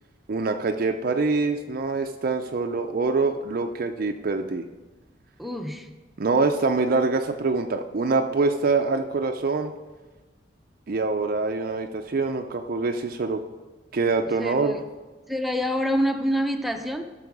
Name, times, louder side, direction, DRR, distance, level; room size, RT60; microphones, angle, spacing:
voice 1, 0.3-4.6 6.2-9.7 10.9-13.4 13.9-14.7, right 3 dB, 50° right, 5 dB, 0.5 m, -25 dB
voice 2, 5.4-5.9 14.4-14.8 15.3-17.0, equal, ahead, 5 dB, 0.6 m, -26 dB
13.0 x 6.1 x 4.8 m, 1.2 s
head